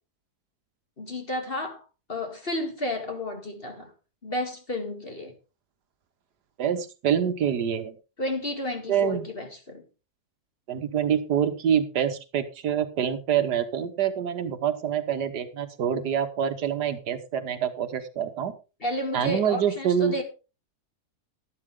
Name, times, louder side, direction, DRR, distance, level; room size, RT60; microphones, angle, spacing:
voice 1, 1.0-1.8 2.1-3.9 4.2-5.4 8.2-9.8 18.8-20.2, left 1 dB, 35° left, 2.3 m, -32 dB
voice 2, 6.6-7.9 8.9-9.3 10.7-18.5 19.1-20.2, right 8 dB, 80° right, 1.7 m, -26 dB
12.0 x 11.0 x 3.7 m
omnidirectional pair, 1.7 m